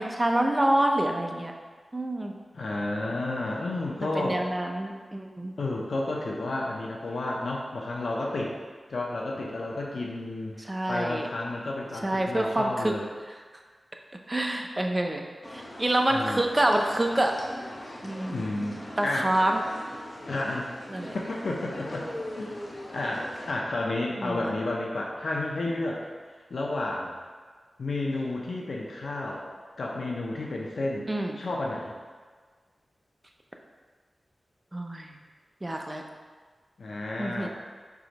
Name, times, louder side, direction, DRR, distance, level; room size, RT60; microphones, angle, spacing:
voice 1, 0.0-1.5 1.9-2.3 4.1-5.5 10.6-11.3 12.0-12.9 14.3-17.4 18.0-18.5 19.0-19.6 20.9-21.2 24.2-24.5 31.1-31.4 34.7-35.1 35.6-36.0 37.2-37.5, right 1 dB, 20° right, 2 dB, 0.6 m, -27 dB
voice 2, 2.5-4.5 5.6-8.5 8.9-13.1 16.1-16.5 18.3-19.3 20.3-20.7 21.1-22.1 22.3-22.5 22.9-26.0 26.5-27.1 27.8-29.5 29.8-31.1 31.4-31.9 36.8-37.5, left 2 dB, 80° left, -2 dB, 0.7 m, -31 dB
sound 1, 15.4-23.5, left 1 dB, 30° left, 0.9 m, -41 dB
4.8 x 3.8 x 5.3 m, 1.5 s
wide cardioid pair, 100°, 0 cm